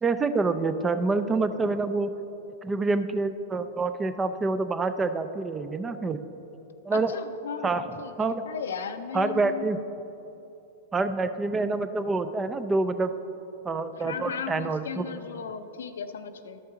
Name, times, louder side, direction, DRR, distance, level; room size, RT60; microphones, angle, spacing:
voice 1, 0.0-2.1 2.6-6.2 6.9-7.1 7.6-7.8 8.2-8.4 9.1-9.8 10.9-13.1 13.6-15.2, right 3 dB, 20° right, 11 dB, 0.4 m, -27 dB
voice 2, 6.9-9.7 14.0-16.6, left 7 dB, 80° left, 10 dB, 0.5 m, -36 dB
12.5 x 5.5 x 3.8 m, 3.0 s
hypercardioid pair, 110°, 0 cm